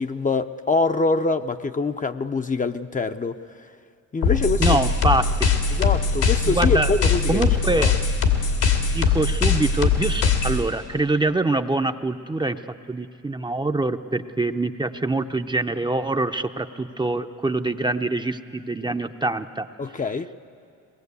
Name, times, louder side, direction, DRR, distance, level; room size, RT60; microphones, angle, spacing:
voice 1, 0.0-3.4 4.1-4.8 5.7-7.4 7.7-7.9 19.8-20.3, left 3 dB, 25° left, 8 dB, 0.6 m, -24 dB
sound 1, 4.2-10.6, left 5 dB, 85° left, 2.6 m, -21 dB
voice 2, 4.6-5.3 6.5-6.9 7.3-7.9 8.8-12.6 12.9-19.7, right 2 dB, 15° right, 7 dB, 0.6 m, -24 dB
22.0 x 19.5 x 8.3 m, 2.4 s
cardioid pair, 90°, 30 cm